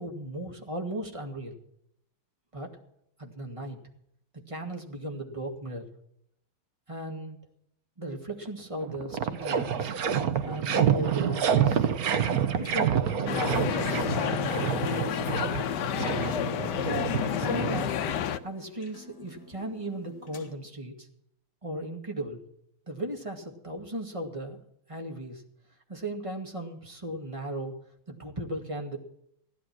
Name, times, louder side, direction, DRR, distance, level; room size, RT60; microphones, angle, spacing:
voice 1, 0.0-1.6 2.5-2.7 3.2-3.8 4.5-5.8 6.9-7.4 8.0-9.9 10.4-11.9 12.6-16.4 17.3-18.0 18.4-21.1 21.6-22.4 22.9-24.6 24.9-25.4 25.9-27.7 28.1-29.0, right 1 dB, 15° right, 2 dB, 2.1 m, -37 dB
sound 1, 8.5-8.6 8.8-18.2, right 8 dB, 55° right, 1.1 m, -28 dB
sound 2, 10.3-20.5, left 1 dB, 50° left, 2.7 m, -52 dB
sound 3, 13.3-18.4, left 10 dB, 65° left, 1.2 m, -30 dB
16.0 x 11.5 x 6.0 m, 0.76 s
omnidirectional pair, 2.4 m